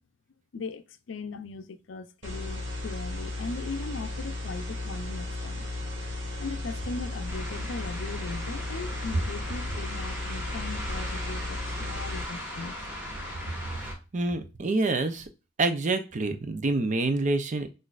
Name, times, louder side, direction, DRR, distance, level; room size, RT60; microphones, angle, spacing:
voice 1, 0.5-5.7 6.4-12.8, left 4 dB, 85° left, 0.5 m, -39 dB
sound 1, 2.2-12.2, left 2 dB, 70° right, 1.4 m, -35 dB
sound 2, 7.3-13.9, equal, 10° right, 1.4 m, -38 dB
voice 2, 14.1-15.3 15.6-17.7, right 2 dB, 40° right, 0.5 m, -27 dB
5.9 x 2.6 x 2.4 m
head